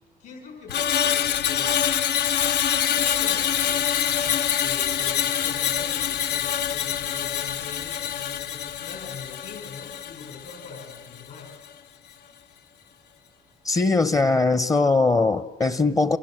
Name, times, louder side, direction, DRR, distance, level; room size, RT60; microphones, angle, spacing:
voice 1, 0.2-1.8 2.9-11.5, left 5 dB, 65° left, 5.9 m, -43 dB
Screech, 0.7-11.1 11.4-11.7, left 9 dB, 85° left, 0.9 m, -25 dB
voice 2, 13.6-16.2, left 3 dB, 20° left, 0.8 m, -21 dB
29.5 x 24.5 x 7.7 m
cardioid pair, 110°, 17 cm